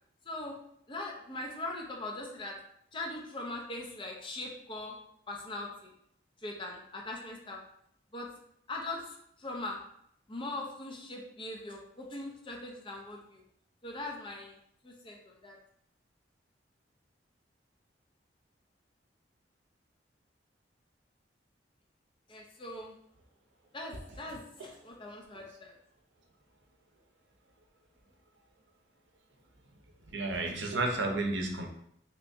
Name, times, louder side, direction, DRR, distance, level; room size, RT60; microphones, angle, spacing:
voice 1, 0.3-0.6 0.9-2.6 2.9-5.0 5.3-5.9 6.4-7.6 8.1-8.3 8.7-9.8 10.3-13.4 13.8-14.6 14.8-15.6 22.3-22.9 23.7-25.7, left 2 dB, 30° left, 0 dB, 0.5 m, -41 dB
voice 2, 30.1-31.7, right 2 dB, 80° right, 3 dB, 0.6 m, -31 dB
3.3 x 2.9 x 2.6 m, 0.71 s
head